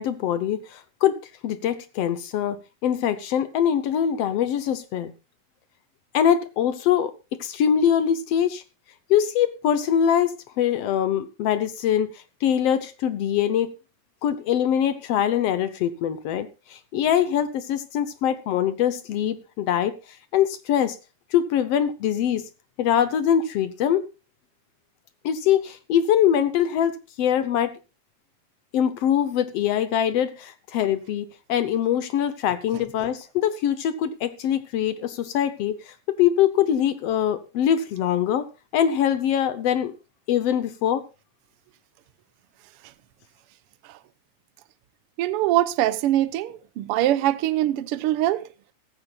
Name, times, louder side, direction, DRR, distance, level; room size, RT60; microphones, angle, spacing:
voice 1, 0.0-5.1 6.1-8.6 9.1-12.1 12.4-13.7 14.2-20.0 20.3-21.0 21.3-22.5 22.8-24.1 25.2-27.8 28.7-38.5 38.7-39.9 40.3-41.0, left 9 dB, 65° left, 1.7 m, -23 dB
voice 2, 45.2-48.4, right 14 dB, 75° right, 1.4 m, -23 dB
16.5 x 14.0 x 2.4 m
omnidirectional pair, 3.4 m